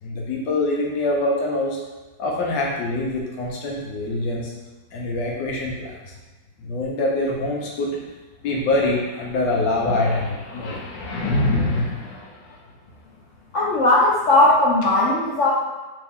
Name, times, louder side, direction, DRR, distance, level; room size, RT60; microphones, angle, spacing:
voice 1, 0.0-1.8 2.2-4.5 4.9-6.1 6.6-7.9 8.4-12.6, left 2 dB, 85° left, -2 dB, 1.5 m, -24 dB
voice 2, 13.5-15.5, left 2 dB, 55° left, -8 dB, 0.9 m, -17 dB
3.5 x 3.4 x 3.5 m, 1.2 s
omnidirectional pair, 1.9 m